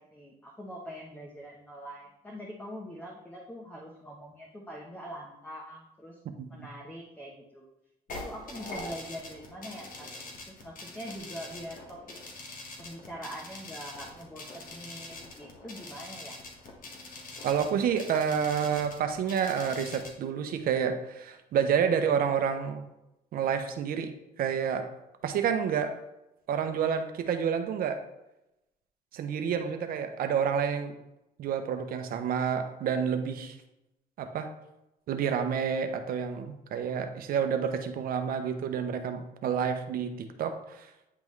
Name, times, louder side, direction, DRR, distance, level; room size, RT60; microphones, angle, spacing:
voice 1, 0.0-6.2 6.5-7.6 8.2-10.1 10.5-12.2 12.8-16.4, equal, 10° left, -2 dB, 0.9 m, -43 dB
sound 1, 8.1-20.1, left 2 dB, 55° left, 1.4 m, -44 dB
voice 2, 17.4-22.9 23.3-24.9 25.2-26.0 26.5-28.0 29.1-31.0 31.4-33.6 34.2-34.5 35.1-40.9, right 7 dB, 60° right, 7 dB, 0.7 m, -29 dB
9.3 x 3.5 x 3.1 m, 0.92 s
cardioid pair, 110°, 17 cm